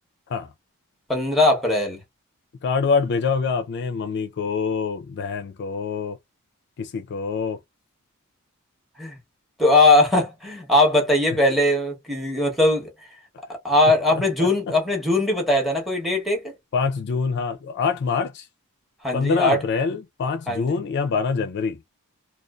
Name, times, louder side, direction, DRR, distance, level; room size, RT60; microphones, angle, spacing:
voice 1, 1.1-2.0 9.0-9.2 9.6-12.9 13.6-16.5 19.0-19.6 20.5-20.7, left 2 dB, ahead, 0.8 m, -20 dB
voice 2, 2.6-6.2 6.8-7.6 14.1-14.5 16.7-18.5 19.1-21.8, left 5 dB, 50° left, 0.4 m, -25 dB
2.5 x 2.3 x 2.2 m
head